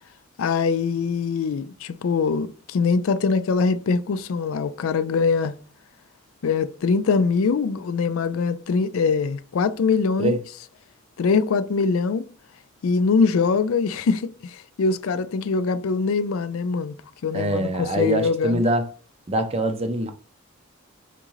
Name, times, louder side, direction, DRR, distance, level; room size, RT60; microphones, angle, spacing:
voice 1, 0.4-5.5 6.4-10.4 11.2-12.2 12.8-16.9 17.2-18.6, left 5 dB, 75° left, 0.4 m, -23 dB
voice 2, 17.3-18.9 19.3-20.1, right 1 dB, 30° right, 0.5 m, -23 dB
3.7 x 3.6 x 3.0 m
head